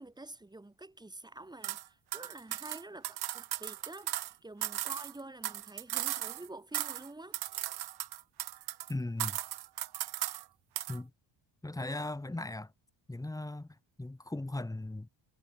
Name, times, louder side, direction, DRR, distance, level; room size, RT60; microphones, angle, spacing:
voice 1, 0.0-7.4, right 2 dB, 10° right, 3.2 m, -48 dB
sound 1, 1.6-1.8 2.1-4.3 4.6-6.5 6.7-7.1 7.3-8.9 9.2-10.4 10.8-11.0, right 13 dB, 50° right, 1.1 m, -37 dB
voice 2, 8.9-9.4 10.9-11.1 11.6-12.7 13.1-13.7 14.0-15.1, left 2 dB, 5° left, 1.8 m, -37 dB
cardioid pair, 160°, 47 cm